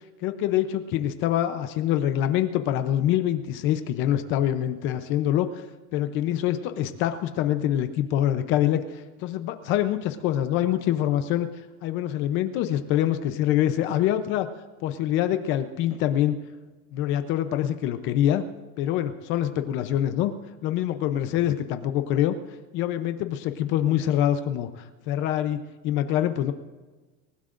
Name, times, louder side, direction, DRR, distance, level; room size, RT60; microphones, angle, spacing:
voice 1, 0.2-5.7 5.9-11.5 11.8-14.5 14.8-16.4 16.9-18.4 18.8-20.3 20.6-22.3 22.7-25.6 25.8-26.5, left 11 dB, 35° left, 9 dB, 0.6 m, -25 dB
27.0 x 16.0 x 2.5 m, 1.3 s
supercardioid pair, 175°, 36 cm